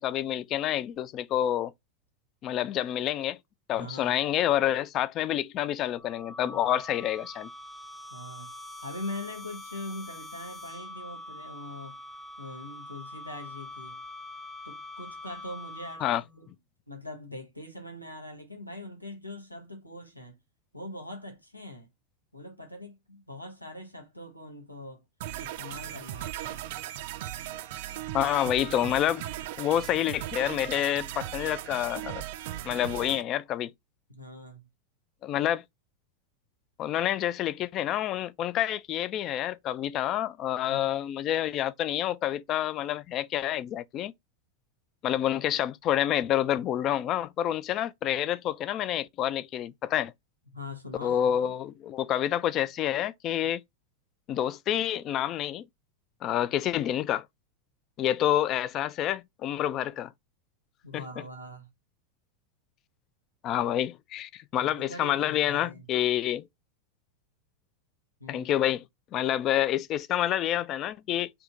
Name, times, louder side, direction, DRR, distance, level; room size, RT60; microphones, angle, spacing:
voice 1, 0.0-1.7 2.4-3.4 3.7-7.5 16.0-16.2 28.1-29.3 29.6-32.2 32.6-33.7 35.2-35.6 36.8-44.1 45.0-50.1 51.0-53.6 54.3-55.6 56.2-57.3 58.0-60.1 60.9-61.0 63.4-66.5 68.3-68.8 69.1-71.3, left 11 dB, 35° left, 0.3 m, -28 dB
voice 2, 3.7-4.2 6.4-6.7 8.1-8.5 8.8-12.0 12.4-14.0 14.6-16.6 16.9-20.4 20.7-21.9 22.3-25.0 25.4-26.7 34.1-34.7 40.6-40.9 50.5-51.5 60.8-61.7 64.5-65.9 68.2-68.5, left 1 dB, 90° left, 0.9 m, -42 dB
sound 1, 5.9-16.3, left 1 dB, ahead, 0.7 m, -44 dB
sound 2, 25.2-33.2, right 13 dB, 55° right, 0.4 m, -38 dB
3.5 x 2.9 x 3.6 m
figure-of-eight pair, 90°, 0 cm